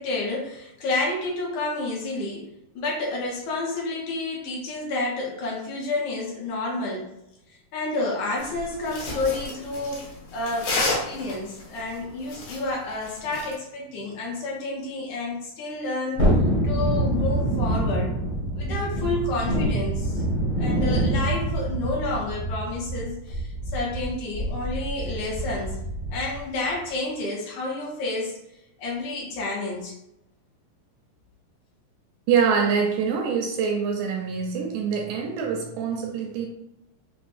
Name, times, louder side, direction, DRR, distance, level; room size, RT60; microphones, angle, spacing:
voice 1, 0.0-2.4 2.8-7.1 7.7-16.3 16.6-18.1 18.5-20.2 20.6-25.8 26.1-28.4 28.8-29.9, left 2 dB, 70° left, -3 dB, 2.0 m, -30 dB
sound 1, 8.4-13.5, left 2 dB, 85° left, 3.0 m, -31 dB
Thunderstorm, 16.2-26.4 26.7-26.8, right 1 dB, 55° left, 1.4 m, -26 dB
voice 2, 32.3-36.5, right 6 dB, 80° right, 1 dB, 1.9 m, -25 dB
6.1 x 2.1 x 2.5 m, 0.87 s
omnidirectional pair, 3.8 m